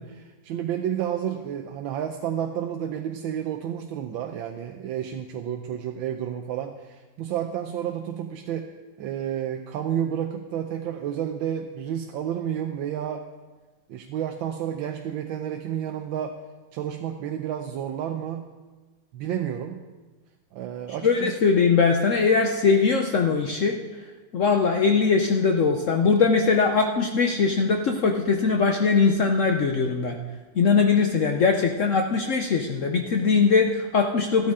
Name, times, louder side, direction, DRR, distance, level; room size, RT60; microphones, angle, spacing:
voice 1, 0.1-8.7 9.0-13.2 13.9-16.4 16.7-18.5 19.1-19.8 20.5-21.3, right 9 dB, 75° right, 4 dB, 1.4 m, -30 dB
voice 2, 21.0-23.8 24.3-30.2 30.5-34.5, left 5 dB, 75° left, 4 dB, 0.7 m, -21 dB
13.5 x 12.5 x 3.7 m, 1.3 s
omnidirectional pair, 2.2 m